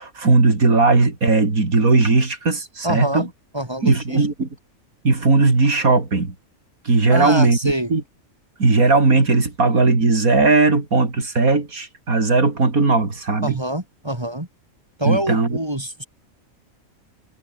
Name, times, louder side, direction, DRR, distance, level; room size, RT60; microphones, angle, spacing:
voice 1, 0.0-3.3 3.8-4.5 5.0-6.3 6.8-8.0 8.6-13.6 15.0-15.6, right 3 dB, 85° right, 4.1 m, -17 dB
voice 2, 2.8-3.3 3.5-4.3 7.1-7.9 13.4-14.5 15.0-16.1, right 1 dB, 20° right, 2.6 m, -25 dB
omnidirectional pair, 1.5 m